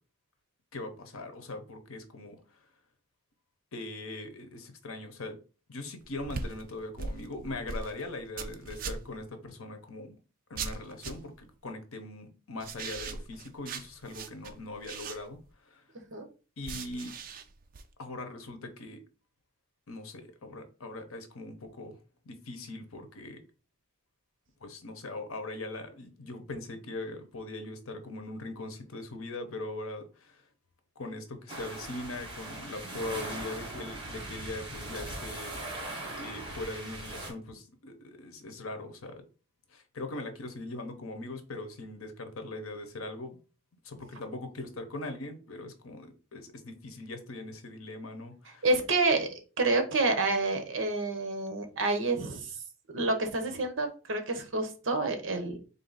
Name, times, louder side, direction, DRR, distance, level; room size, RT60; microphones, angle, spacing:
voice 1, 0.7-2.4 3.7-5.4 5.7-10.2 10.5-15.4 15.6-15.8 16.6-17.1 18.0-19.0 19.9-22.0 22.3-23.4 24.6-30.4 31.0-35.6 36.2-39.2 39.7-43.4 43.8-48.6, left 2 dB, 80° left, 0.8 m, -41 dB
sound 1, 6.0-9.2 10.6-11.4 12.6-15.5 16.6-17.8, right 4 dB, 40° right, 0.4 m, -40 dB
sound 2, 31.5-37.3, right 1 dB, 25° right, 1.0 m, -40 dB
voice 2, 48.6-52.6 52.9-55.6, right 2 dB, 65° right, 0.8 m, -28 dB
3.7 x 2.6 x 4.0 m
head